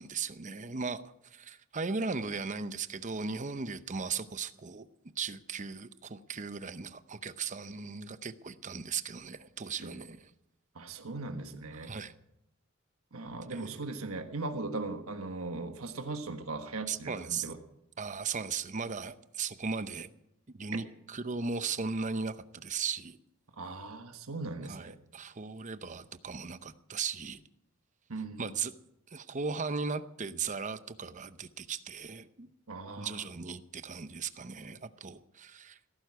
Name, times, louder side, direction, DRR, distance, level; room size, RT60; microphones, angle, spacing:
voice 1, 0.0-4.9 5.2-10.3 11.8-12.1 13.5-13.9 16.9-17.5 18.0-20.1 20.5-23.2 24.7-27.4 28.4-28.7 29.1-32.5 33.0-35.8, right 5 dB, 35° right, 13 dB, 0.7 m, -37 dB
voice 2, 10.7-11.9 13.1-17.6 23.6-24.9 28.1-28.5 32.7-33.2, right 3 dB, 90° right, 6 dB, 1.4 m, -39 dB
16.5 x 14.0 x 4.8 m, 0.83 s
head